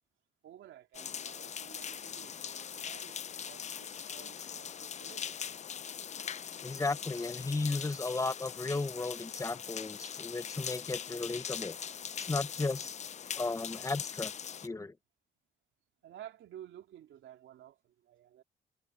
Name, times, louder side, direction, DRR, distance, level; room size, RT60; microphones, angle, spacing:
voice 1, 0.4-5.3 6.3-6.6 16.0-18.4, right 11 dB, 75° right, 2.7 m, -53 dB
sound 1, 0.9-14.7, left 8 dB, 35° left, 0.5 m, -41 dB
voice 2, 6.6-11.8 12.2-13.0 13.4-14.3 14.6-14.9, left 3 dB, 15° left, 0.8 m, -35 dB
cardioid pair, 90°, 20 cm